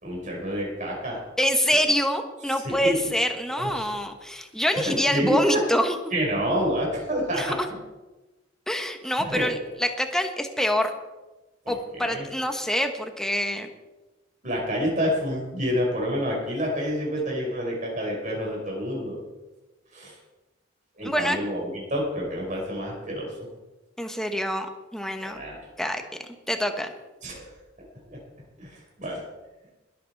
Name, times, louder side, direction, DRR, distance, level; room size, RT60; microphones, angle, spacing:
voice 1, 0.0-1.2 2.6-3.0 3.6-3.7 4.7-5.4 6.1-7.5 9.2-9.4 11.9-12.2 14.4-19.2 19.9-20.1 21.0-23.3 25.2-25.6 27.2-27.5 28.1-28.2 28.6-29.2, equal, 40° right, -2 dB, 5.0 m, -28 dB
voice 2, 1.4-6.0 7.3-7.7 8.7-10.9 11.7-13.7 21.0-21.4 24.0-25.4 25.8-26.0 26.5-26.9, equal, 5° left, 5 dB, 1.2 m, -26 dB
21.5 x 8.0 x 4.7 m, 1.1 s
head